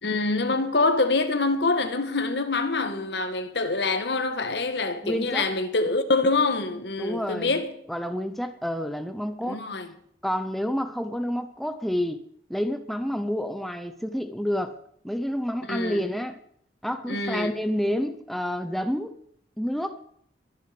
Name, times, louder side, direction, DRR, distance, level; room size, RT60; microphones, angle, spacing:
voice 1, 0.0-7.7 9.4-9.9 15.7-16.1 17.1-17.5, left 3 dB, 65° left, 1.6 m, -25 dB
voice 2, 5.0-5.5 7.0-7.5 7.9-9.6 10.2-12.2 12.5-14.8 15.0-16.4 16.8-19.1 19.6-20.0, equal, ahead, 0.9 m, -29 dB
22.5 x 10.0 x 5.2 m
head